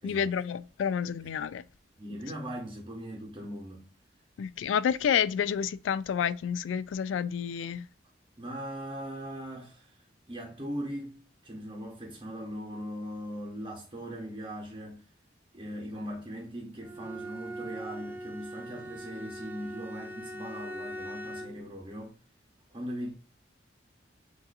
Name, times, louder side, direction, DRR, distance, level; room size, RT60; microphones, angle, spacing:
voice 1, 0.0-1.6 4.4-7.9, left 8 dB, 85° left, 0.3 m, -29 dB
voice 2, 2.0-3.9 8.4-9.9 10.3-15.0 15.5-22.1 22.7-23.1, equal, 25° right, 0.9 m, -39 dB
Bowed string instrument, 16.8-21.7, right 1 dB, 10° right, 0.4 m, -41 dB
6.4 x 2.7 x 2.6 m
head